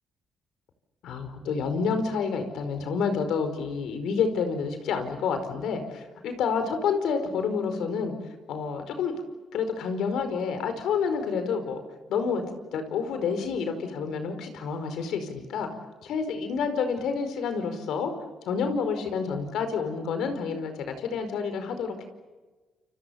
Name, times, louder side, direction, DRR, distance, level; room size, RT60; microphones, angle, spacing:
voice 1, 1.0-8.1 8.5-9.1 9.5-11.8 12.1-15.7 16.0-18.1 18.4-22.0, left 5 dB, 80° left, 8 dB, 5.0 m, -29 dB
29.5 x 27.5 x 7.2 m, 1.2 s
cardioid pair, 90°, 0 cm